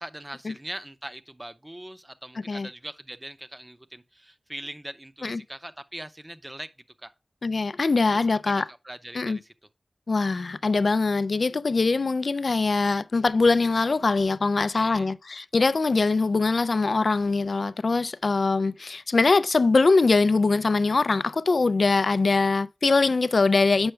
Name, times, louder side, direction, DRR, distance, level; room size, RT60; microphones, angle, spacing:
voice 1, 0.0-6.7 7.0-7.1 8.1-9.5 14.7-15.1, right 1 dB, 20° right, 0.6 m, -41 dB
voice 2, 7.4-8.6 9.1-9.4 10.1-23.9, left 3 dB, 70° left, 0.3 m, -22 dB
7.8 x 5.5 x 3.2 m
wide cardioid pair, 55°, 0 cm